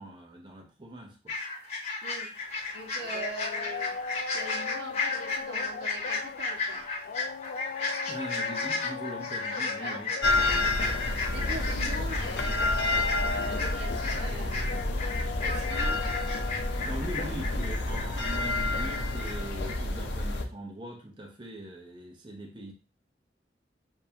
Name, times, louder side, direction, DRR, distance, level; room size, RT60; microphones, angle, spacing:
voice 1, 0.0-1.3 8.1-10.1 16.9-22.7, right 1 dB, 25° right, 1 dB, 0.7 m, -41 dB
sound 1, 1.3-19.3 19.6-19.7, left 3 dB, 35° left, 1.4 m, -34 dB
voice 2, 2.0-2.3 2.7-3.9 4.3-6.9 9.8-10.8 11.3-14.9 15.4-16.0, right 2 dB, 85° right, -1 dB, 1.4 m, -42 dB
sound 2, 2.4-18.7, left 6 dB, 60° left, 0.3 m, -40 dB
sound 3, 10.2-20.4, left 2 dB, 90° left, 0.7 m, -29 dB
6.9 x 2.7 x 2.7 m, 0.33 s
head